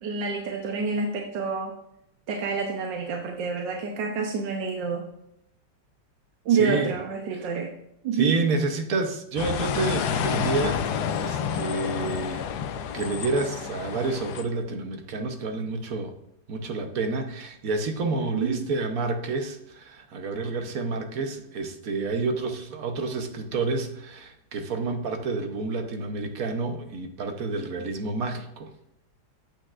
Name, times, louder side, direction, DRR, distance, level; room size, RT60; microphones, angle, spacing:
voice 1, 0.0-1.7 2.3-5.0 6.4-7.7 8.0-8.3 18.3-18.6, right 5 dB, 85° right, 1 dB, 1.5 m, -27 dB
voice 2, 6.5-6.9 8.1-10.9 11.2-12.5 12.9-16.1 16.5-28.7, right 3 dB, 60° right, 6 dB, 1.2 m, -29 dB
sound 1, 9.4-14.4, left 7 dB, 75° left, 1.1 m, -29 dB
8.6 x 8.4 x 2.5 m, 0.77 s
omnidirectional pair, 2.0 m